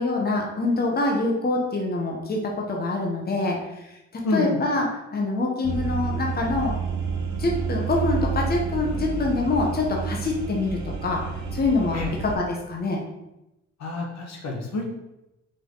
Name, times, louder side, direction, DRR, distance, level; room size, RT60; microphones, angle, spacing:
voice 1, 0.0-2.4 2.7-4.0 4.3-4.9 5.1-6.7 7.4-11.2 11.5-12.0 12.2-13.0, left 3 dB, 30° left, 0 dB, 1.2 m, -25 dB
voice 2, 4.2-4.6 11.9-12.1 13.8-14.9, left 2 dB, 65° left, 1 dB, 1.5 m, -28 dB
sound 1, 5.6-12.3, right 5 dB, 70° right, 1.2 m, -29 dB
6.3 x 4.5 x 4.0 m, 0.92 s
cardioid pair, 90°, 30 cm